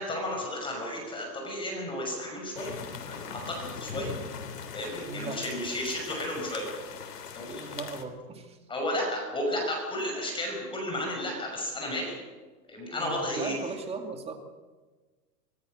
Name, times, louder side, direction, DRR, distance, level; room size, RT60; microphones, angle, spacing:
voice 1, 0.0-2.8 3.1-4.2 4.7-6.6 7.3-7.6 8.7-12.2 12.7-13.5, left 1 dB, 10° left, 0 dB, 5.8 m, -33 dB
sound 1, 2.6-8.0, left 6 dB, 80° left, 3.6 m, -40 dB
voice 2, 5.0-5.4 7.5-8.6 12.9-14.4, right 3 dB, 10° right, 5 dB, 2.4 m, -37 dB
24.5 x 22.5 x 6.5 m, 1.3 s
hypercardioid pair, 145°, 47 cm